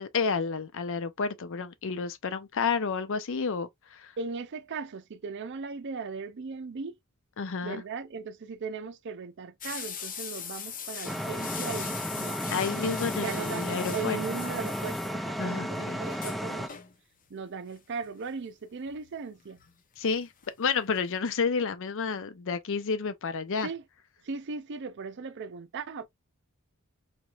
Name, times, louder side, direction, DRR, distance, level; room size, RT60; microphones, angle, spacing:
voice 1, 0.0-4.1 7.4-7.8 12.5-14.2 15.4-16.1 20.0-20.3 20.6-23.7, left 5 dB, 60° left, 0.6 m, -30 dB
voice 2, 4.2-6.9 7.6-12.5 13.2-16.8 17.3-19.6 23.6-23.8 24.2-26.1, right 5 dB, 55° right, 0.5 m, -38 dB
sound 1, 9.6-15.4 15.7-15.8 16.1-16.9 18.0-18.3 18.9-20.1 20.4-20.5 20.9-21.0, left 7 dB, 40° left, 0.9 m, -40 dB
sound 2, 11.0-16.7, equal, ahead, 0.4 m, -33 dB
4.2 x 3.1 x 2.4 m
head